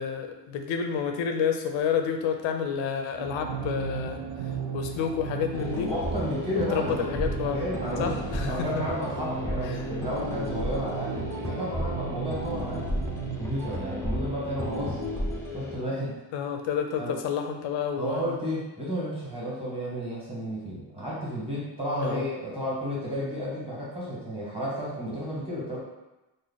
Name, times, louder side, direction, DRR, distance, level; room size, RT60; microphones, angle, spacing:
voice 1, 0.0-5.9 6.5-7.6 8.0-8.8 9.6-9.9 16.3-18.4 22.0-22.3, left 7 dB, 90° left, 5 dB, 0.6 m, -30 dB
sound 1, 3.2-13.4, right 6 dB, 70° right, 0.6 m, -36 dB
sound 2, 5.5-15.8, left 1 dB, 5° left, 0.4 m, -33 dB
voice 2, 5.8-7.2 7.5-8.1 8.4-12.9 13.2-15.0 15.5-16.2 17.0-17.1 18.0-25.8, equal, 15° right, -6 dB, 1.4 m, -32 dB
3.1 x 2.2 x 3.8 m, 1.0 s
cardioid pair, 125°, 44 cm